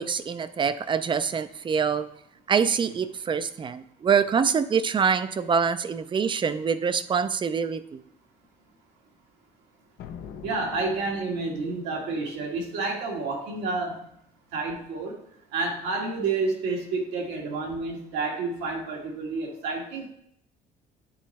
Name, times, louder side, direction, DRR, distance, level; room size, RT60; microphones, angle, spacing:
voice 1, 0.0-2.1 2.5-7.8, right 6 dB, 30° right, 13 dB, 0.4 m, -25 dB
sound 1, 10.0-11.7, left 8 dB, 70° left, 0.6 m, -43 dB
voice 2, 10.4-13.9 14.5-15.1 15.5-20.1, right 3 dB, 90° right, 0 dB, 1.6 m, -29 dB
8.4 x 3.1 x 4.1 m, 0.71 s
cardioid pair, 110°, 17 cm